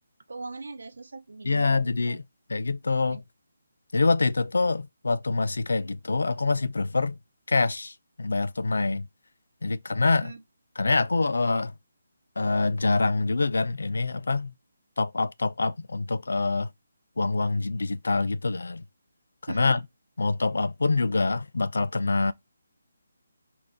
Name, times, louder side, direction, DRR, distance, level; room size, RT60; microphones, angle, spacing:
voice 1, 0.3-1.8 2.1-2.2 3.1-3.2 10.2-10.4 19.5-19.8, right 3 dB, 70° right, 0.7 m, -39 dB
voice 2, 1.4-2.2 2.5-3.2 3.9-7.2 7.5-9.1 9.6-10.3 10.8-11.7 12.4-14.5 15.0-16.7 17.2-18.8 19.4-19.8 20.2-22.3, left 3 dB, 80° left, 0.3 m, -25 dB
2.4 x 2.1 x 3.5 m
hypercardioid pair, 180°, 0 cm